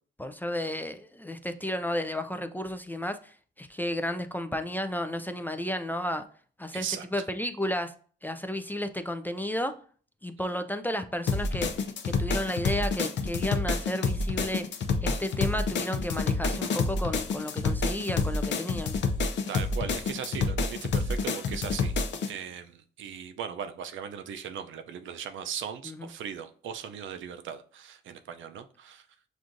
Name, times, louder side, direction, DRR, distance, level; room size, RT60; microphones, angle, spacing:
voice 1, 0.2-6.2 6.6-6.9 7.1-7.9 8.2-9.7 10.2-11.7 12.0-14.6 15.0-19.0 25.9-26.1, left 1 dB, 10° left, 9 dB, 0.3 m, -32 dB
voice 2, 6.7-7.1 19.5-22.0 22.3-29.1, right 8 dB, 80° right, 8 dB, 0.5 m, -38 dB
sound 1, 11.3-22.3, left 4 dB, 70° left, 0.5 m, -28 dB
5.9 x 2.5 x 2.5 m, 0.44 s
cardioid pair, 90°, 20 cm